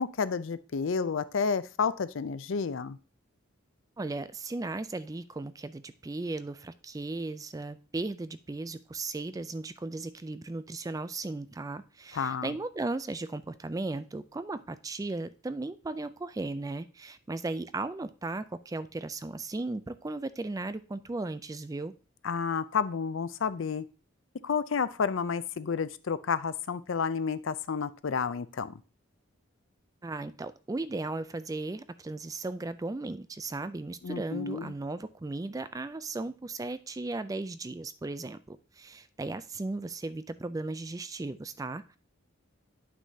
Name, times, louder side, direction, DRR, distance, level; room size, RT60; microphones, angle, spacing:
voice 1, 0.0-3.0 12.1-12.5 22.2-23.9 24.4-28.8 34.0-34.7, left 5 dB, 65° left, 14 dB, 0.5 m, -30 dB
voice 2, 4.0-21.9 30.0-42.0, right 2 dB, 15° right, 13 dB, 0.3 m, -36 dB
9.7 x 6.0 x 2.8 m, 0.35 s
head